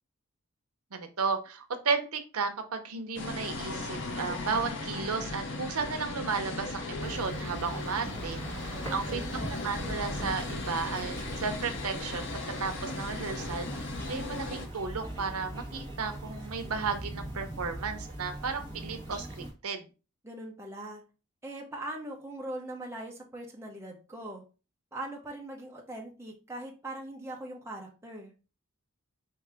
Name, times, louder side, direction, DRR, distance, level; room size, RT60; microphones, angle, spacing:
voice 1, 0.9-8.4 8.9-13.7 14.1-19.8, right 5 dB, 85° right, 7 dB, 0.7 m, -34 dB
sound 1, 3.2-14.7, left 2 dB, 55° left, 0.7 m, -37 dB
sound 2, 7.0-19.5, right 1 dB, 10° left, 1.3 m, -41 dB
voice 2, 8.8-9.3 20.2-21.0 21.4-24.4 24.9-28.3, right 1 dB, 10° right, -1 dB, 0.8 m, -41 dB
4.6 x 2.8 x 3.4 m, 0.33 s
head